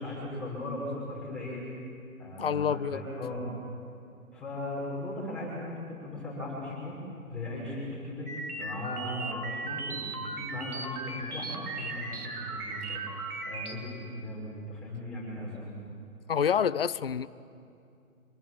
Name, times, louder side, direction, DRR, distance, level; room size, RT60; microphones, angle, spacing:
voice 1, 0.0-1.6 2.2-3.5 4.3-7.0 7.3-8.3 8.6-13.0 13.4-15.8, left 1 dB, ahead, -7 dB, 5.6 m, -38 dB
voice 2, 2.4-3.0 16.3-17.3, left 7 dB, 40° left, 15 dB, 0.6 m, -27 dB
sound 1, 8.3-13.7, right 3 dB, 85° right, 3.8 m, -37 dB
25.5 x 23.5 x 7.7 m, 2.5 s
hypercardioid pair, 165°, 43 cm